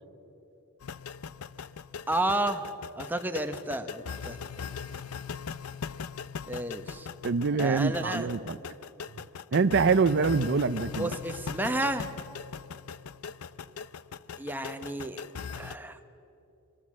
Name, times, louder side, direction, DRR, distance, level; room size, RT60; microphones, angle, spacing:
sound 1, 0.8-15.8, left 6 dB, 75° left, 0.6 m, -40 dB
voice 1, 2.1-2.7 3.0-4.4 6.5-7.1 7.6-8.3 10.9-12.1 14.4-15.2 15.5-16.0, right 1 dB, 10° right, 7 dB, 1.1 m, -31 dB
voice 2, 7.2-8.6 9.5-11.1, right 4 dB, 50° right, 13 dB, 0.5 m, -25 dB
28.0 x 22.0 x 7.5 m, 2.9 s
head